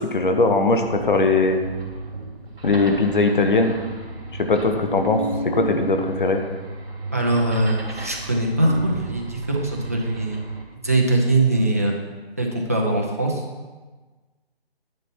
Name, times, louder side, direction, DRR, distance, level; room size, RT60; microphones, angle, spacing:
voice 1, 0.0-1.6 2.6-3.7 4.4-5.2 5.5-6.4, left 3 dB, 50° left, 5 dB, 1.2 m, -19 dB
sound 1, 0.8-10.6, right 2 dB, 65° right, 2.9 m, -33 dB
voice 2, 7.1-10.4 10.7-12.0 12.4-13.4, right 2 dB, 15° right, 0 dB, 0.5 m, -22 dB
10.5 x 7.2 x 4.5 m, 1.3 s
figure-of-eight pair, 160°, 31 cm